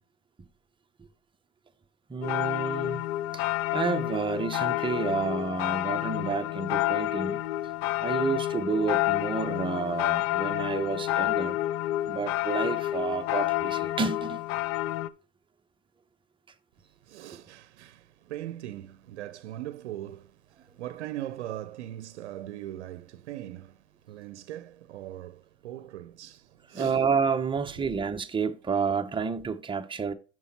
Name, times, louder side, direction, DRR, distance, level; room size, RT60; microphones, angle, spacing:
voice 1, 2.1-3.0 3.3-3.4 3.7-7.4 8.0-11.6 12.1-14.4 26.7-30.1, right 5 dB, 15° right, 0.8 m, -30 dB
sound 1, 2.2-15.1, left 15 dB, 55° left, 0.6 m, -29 dB
voice 2, 17.0-27.0, right 13 dB, 80° right, 0.6 m, -40 dB
6.9 x 6.1 x 4.3 m
hypercardioid pair, 90°, 34 cm